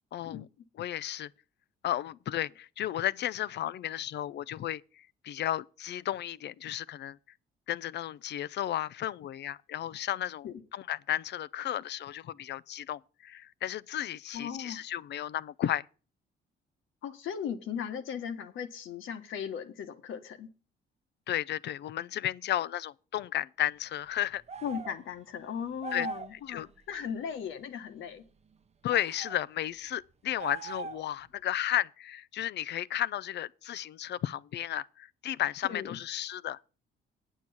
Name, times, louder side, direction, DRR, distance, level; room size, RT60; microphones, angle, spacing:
voice 1, 0.1-0.5 0.8-1.3 1.8-7.2 7.7-10.5 10.7-15.9 21.3-24.4 25.9-26.1 26.3-26.7 28.8-36.6, left 12 dB, 60° left, 0.4 m, -33 dB
voice 2, 14.3-14.8 17.0-20.5 24.6-28.2 35.7-36.0, left 8 dB, 80° left, 1.4 m, -37 dB
sound 1, 24.5-25.0 25.8-26.4 28.9-29.4 30.4-31.2, right 4 dB, 35° right, 0.7 m, -40 dB
9.1 x 6.3 x 7.2 m
cardioid pair, 90°, 20 cm